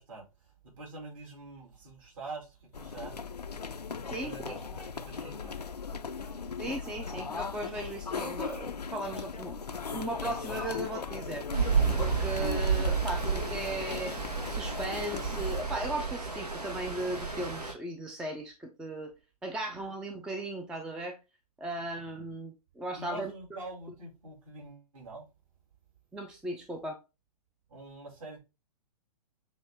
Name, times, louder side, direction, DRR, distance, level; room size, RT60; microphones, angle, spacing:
voice 1, 0.0-3.3 4.1-5.7 22.0-22.1 22.9-25.2 27.7-28.4, right 2 dB, 55° right, 2.7 m, -45 dB
sound 1, 2.7-15.6, left 5 dB, 90° left, 0.4 m, -38 dB
voice 2, 4.1-4.5 6.6-11.4 12.0-14.1 14.5-19.1 19.4-21.2 21.6-23.3 26.1-27.0, right 1 dB, 5° right, 0.3 m, -37 dB
Stream, 11.5-17.7, right 5 dB, 90° right, 1.2 m, -31 dB
6.1 x 2.6 x 3.3 m
figure-of-eight pair, 115°, 20 cm